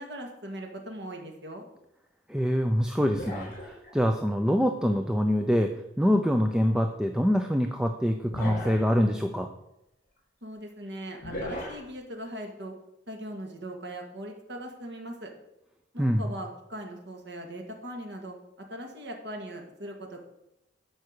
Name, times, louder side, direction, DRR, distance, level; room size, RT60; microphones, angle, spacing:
voice 1, 0.0-1.6 10.4-12.7 13.1-15.3 15.9-20.2, right 1 dB, 65° right, 2 dB, 2.1 m, -40 dB
voice 2, 2.3-9.5 16.0-16.3, equal, 5° right, 4 dB, 0.5 m, -25 dB
sound 1, 3.1-4.1 6.5-6.6 8.3-9.1 11.2-11.8, left 1 dB, 45° left, 3.8 m, -37 dB
12.0 x 5.4 x 6.6 m, 0.86 s
head